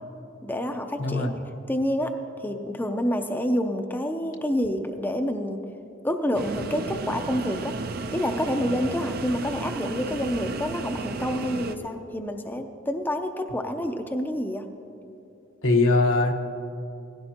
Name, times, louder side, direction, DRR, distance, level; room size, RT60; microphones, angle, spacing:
voice 1, 0.4-1.3 1.7-2.1 2.4-5.6 6.0-7.7 8.1-14.7, equal, 10° left, 5 dB, 0.5 m, -28 dB
voice 2, 1.0-1.3 15.6-16.3, left 2 dB, 80° left, 3 dB, 1.2 m, -21 dB
sound 1, 6.3-11.8, right 3 dB, 50° right, 0.6 m, -33 dB
18.0 x 16.0 x 2.9 m, 2.7 s
head